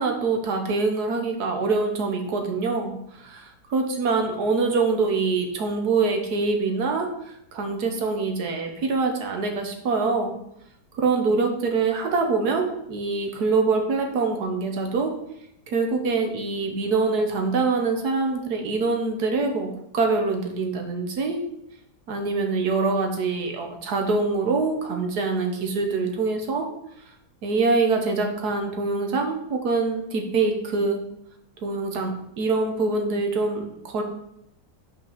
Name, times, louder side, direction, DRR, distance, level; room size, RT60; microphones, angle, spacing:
voice 1, 0.0-10.3 10.9-15.1 15.7-21.4 22.1-26.7 27.4-31.0 31.6-34.0, right 4 dB, 65° right, 4 dB, 1.6 m, -24 dB
5.7 x 4.5 x 5.8 m, 0.79 s
omnidirectional pair, 1.8 m